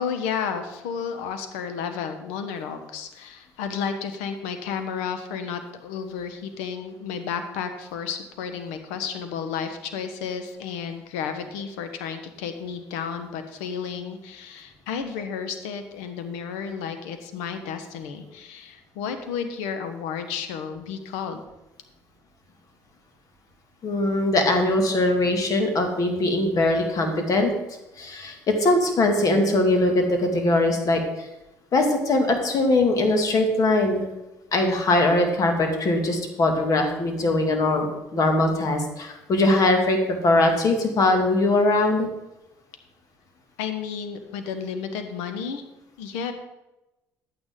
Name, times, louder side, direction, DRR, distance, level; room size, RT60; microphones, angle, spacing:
voice 1, 0.0-21.4 43.6-45.6 46.0-46.3, left 6 dB, 80° left, 8 dB, 1.1 m, -32 dB
voice 2, 23.8-27.5 28.0-31.0 31.7-34.0 34.5-37.9 38.1-40.0 40.2-42.1, left 2 dB, 50° left, 4 dB, 2.2 m, -21 dB
11.0 x 9.0 x 3.8 m, 0.99 s
hypercardioid pair, 65°, 8 cm